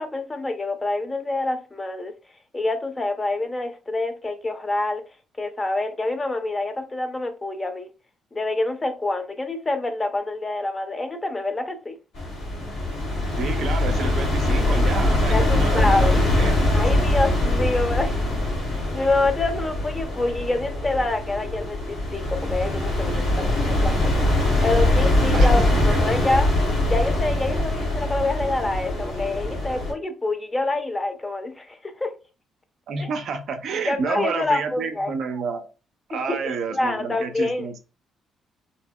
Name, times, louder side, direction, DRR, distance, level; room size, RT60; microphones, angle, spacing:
voice 1, 0.0-2.1 2.5-5.0 5.4-7.9 8.3-12.0 15.3-16.2 16.7-18.3 18.7-24.1 24.6-32.1 33.0-33.1 33.7-35.1 36.1-37.7, left 2 dB, 25° left, 0.6 m, -26 dB
sound 1, 12.1-29.9, left 1 dB, 90° left, 1.2 m, -22 dB
voice 2, 13.4-16.8 25.3-26.2 32.9-35.7 36.1-37.8, right 5 dB, 70° right, 0.4 m, -30 dB
2.7 x 2.7 x 2.2 m
supercardioid pair, 70°, 0 cm